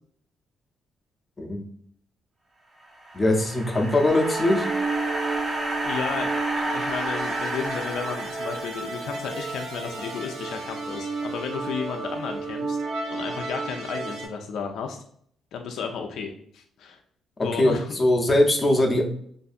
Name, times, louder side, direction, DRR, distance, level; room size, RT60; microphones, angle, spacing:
sound 1, 2.8-9.2, right 1 dB, 25° right, 0.6 m, -31 dB
voice 1, 3.1-4.7 17.6-19.0, left 1 dB, 25° left, 2 dB, 0.6 m, -21 dB
sound 2, 4.1-14.3, right 3 dB, 90° right, 1.0 m, -32 dB
voice 2, 5.8-12.8 13.1-15.0 15.5-17.0 17.4-18.0, left 6 dB, 75° left, 3 dB, 0.3 m, -33 dB
2.6 x 2.5 x 2.4 m, 0.63 s
cardioid pair, 90°, 0 cm